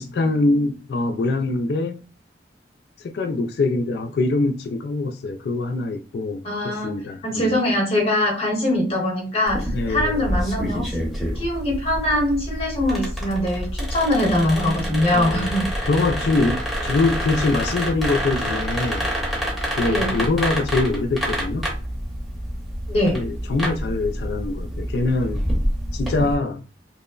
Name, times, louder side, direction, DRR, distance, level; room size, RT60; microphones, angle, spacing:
voice 1, 0.0-2.0 3.0-7.5 9.7-10.3 15.1-15.5 15.9-19.1 19.8-21.7 23.1-25.4 25.9-26.6, left 3 dB, 65° left, 0.3 m, -24 dB
voice 2, 6.4-7.0 7.2-11.1 11.4-15.9 19.8-20.2 22.9-23.2, left 1 dB, 35° left, 0.8 m, -22 dB
sound 1, 9.5-26.3, equal, ahead, 0.8 m, -27 dB
2.9 x 2.0 x 2.3 m
head